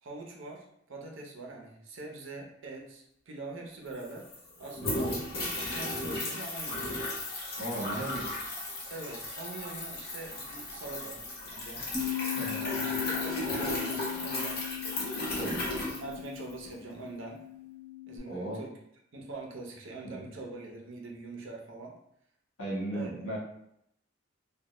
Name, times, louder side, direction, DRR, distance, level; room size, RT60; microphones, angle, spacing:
voice 1, 0.0-6.9 7.7-8.1 8.9-11.2 11.5-11.9 12.6-14.6 15.2-17.4 18.1-18.8 19.1-22.0 22.9-23.1, right 3 dB, 65° right, 0 dB, 0.5 m, -43 dB
sound 1, 3.6-3.7 3.9-16.7, left 1 dB, 50° left, 0.7 m, -35 dB
voice 2, 7.6-8.2 12.4-12.6 15.4-15.6 18.3-18.6 20.1-20.2 22.6-23.4, right 1 dB, 85° left, -5 dB, 1.0 m, -35 dB
Bass guitar, 11.9-18.2, left 13 dB, 5° left, 0.5 m, -38 dB
2.1 x 2.0 x 2.8 m, 0.74 s
head